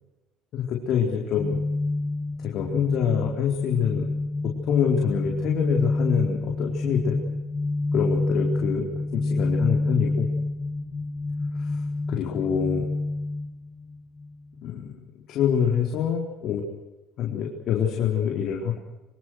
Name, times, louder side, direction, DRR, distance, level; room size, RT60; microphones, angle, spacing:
voice 1, 0.5-1.6 2.4-4.1 4.7-7.2 7.9-10.3 11.5-11.8 12.1-12.9 14.6-15.0 15.3-16.6 17.2-18.8, left 8 dB, 55° left, 0 dB, 4.4 m, -26 dB
sound 1, 1.3-14.4, left 2 dB, 25° left, 1.5 m, -28 dB
25.5 x 25.0 x 6.5 m, 1.1 s
cardioid pair, 115°, 0 cm